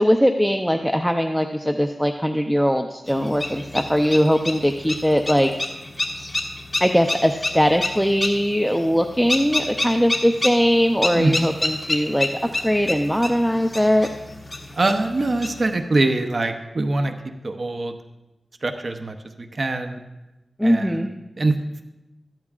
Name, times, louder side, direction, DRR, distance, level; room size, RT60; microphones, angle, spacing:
voice 1, 0.0-5.5 6.8-14.1 20.6-21.1, equal, ahead, 5 dB, 0.6 m, -20 dB
sound 1, 3.1-15.7, left 2 dB, 25° left, 1.8 m, -29 dB
voice 2, 11.1-11.5 14.7-17.1 17.4-17.9 18.6-20.0 20.6-21.1 21.4-21.6, right 2 dB, 55° right, 6 dB, 0.8 m, -23 dB
14.5 x 12.0 x 2.4 m, 0.99 s
wide cardioid pair, 65°, 0 cm